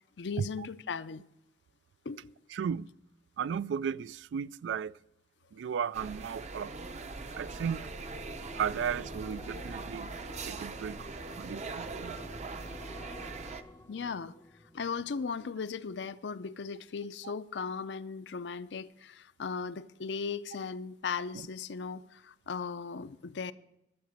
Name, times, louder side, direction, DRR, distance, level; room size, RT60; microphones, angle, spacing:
voice 1, 0.2-1.2 2.1-2.3 13.9-14.4 14.7-23.5, left 5 dB, 70° left, 0.5 m, -37 dB
voice 2, 2.5-2.9 3.4-5.0 5.5-6.8 7.4-7.9 8.6-10.1 10.5-11.1 11.4-12.2 17.2-17.3 21.3-21.5, right 7 dB, 80° right, 0.3 m, -35 dB
sound 1, 5.9-13.6, right 3 dB, 40° right, 0.7 m, -41 dB
sound 2, 6.7-16.0 16.3-16.7, left 1 dB, 15° left, 0.4 m, -51 dB
12.0 x 7.6 x 6.4 m
head